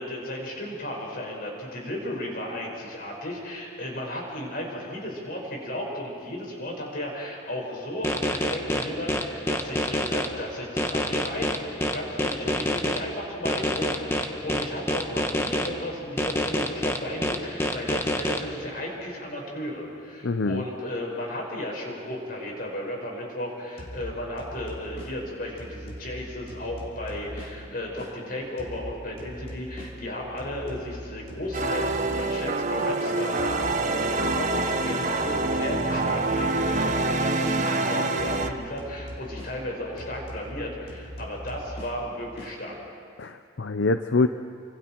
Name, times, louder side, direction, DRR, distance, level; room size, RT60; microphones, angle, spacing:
voice 1, 0.0-11.6 11.9-42.8, left 1 dB, 50° left, -1 dB, 5.7 m, -34 dB
sound 1, 8.0-10.3 10.8-13.0 13.5-15.7 16.2-18.4, left 1 dB, 15° left, 1.3 m, -26 dB
voice 2, 20.2-20.6 43.2-44.3, left 3 dB, 75° left, 9 dB, 0.6 m, -24 dB
sound 2, 23.8-28.2 28.6-33.0 33.4-37.8 38.2-42.6, equal, 35° left, 3.0 m, -41 dB
sound 3, 31.5-38.5, right 2 dB, 40° right, 1.1 m, -26 dB
29.5 x 26.0 x 4.6 m, 2.5 s
head